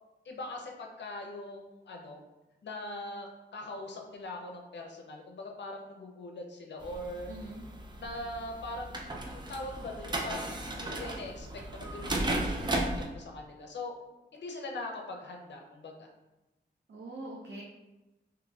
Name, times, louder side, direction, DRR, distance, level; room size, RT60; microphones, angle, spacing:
voice 1, 0.2-2.2 2.6-7.3 8.0-14.0 14.3-16.1, left 2 dB, 75° left, 2 dB, 0.5 m, -41 dB
sound 1, 6.8-13.1, right 1 dB, 25° right, 0.4 m, -35 dB
voice 2, 7.3-7.6 16.9-17.6, right 2 dB, 85° right, -4 dB, 0.6 m, -43 dB
3.8 x 2.9 x 2.3 m, 1.0 s
wide cardioid pair, 135°, 18 cm